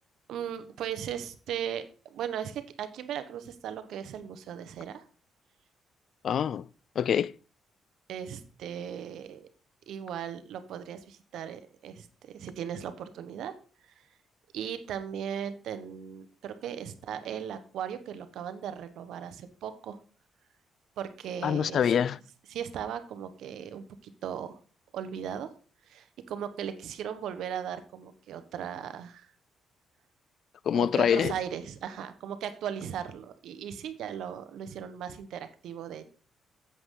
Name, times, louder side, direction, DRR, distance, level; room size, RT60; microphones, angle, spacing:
voice 1, 0.3-5.0 8.1-9.5 9.9-13.5 14.0-14.1 14.5-20.0 21.0-21.8 22.5-24.6 24.9-25.5 25.8-29.3 30.7-36.1, right 9 dB, 80° right, 1.1 m, -37 dB
voice 2, 6.2-6.7 7.0-7.3 21.4-22.2 30.7-31.3, left 8 dB, 60° left, 0.3 m, -25 dB
8.1 x 8.1 x 3.7 m
cardioid pair, 90°, 0 cm